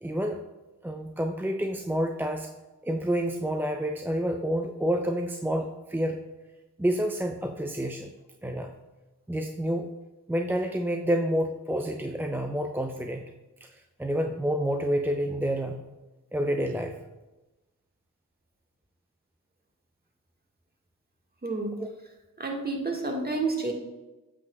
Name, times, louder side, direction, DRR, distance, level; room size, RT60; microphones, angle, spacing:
voice 1, 0.0-0.4 0.8-2.5 2.8-6.2 6.8-8.1 8.4-8.7 9.3-9.9 10.3-13.3 13.6-15.8 16.3-16.9 21.8-21.9, equal, 5° right, 4 dB, 0.4 m, -29 dB
voice 2, 21.4-21.8 22.4-23.7, right 3 dB, 25° right, 1 dB, 1.5 m, -29 dB
8.4 x 5.8 x 2.3 m, 1.1 s
supercardioid pair, 50°, 35 cm